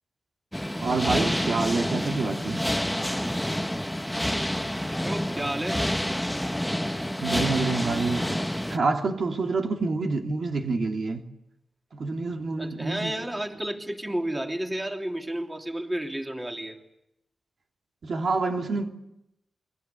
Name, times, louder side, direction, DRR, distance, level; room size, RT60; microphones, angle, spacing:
sound 1, 0.5-8.8, equal, 5° left, 1.0 m, -28 dB
voice 1, 0.8-2.6 7.2-11.2 11.9-13.1 18.0-18.9, right 3 dB, 65° right, 2.8 m, -27 dB
voice 2, 5.0-5.8 12.6-16.8, right 1 dB, 15° right, 3.1 m, -31 dB
29.0 x 22.5 x 8.5 m
wide cardioid pair, 100°, 0 cm